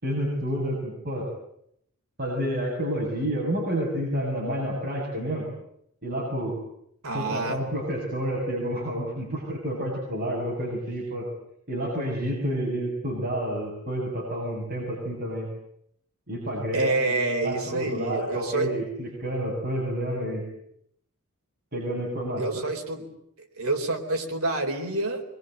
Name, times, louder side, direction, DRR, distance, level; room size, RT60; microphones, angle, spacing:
voice 1, 0.0-1.2 2.2-5.5 6.0-6.6 7.1-11.3 11.7-15.5 16.3-17.1 17.4-20.4 21.7-22.6, equal, 45° right, -3 dB, 7.4 m, -29 dB
voice 2, 7.0-7.6 16.7-18.7 22.4-23.0 23.4-25.2, right 2 dB, 70° right, 4 dB, 4.2 m, -28 dB
24.5 x 23.0 x 9.3 m, 0.75 s
head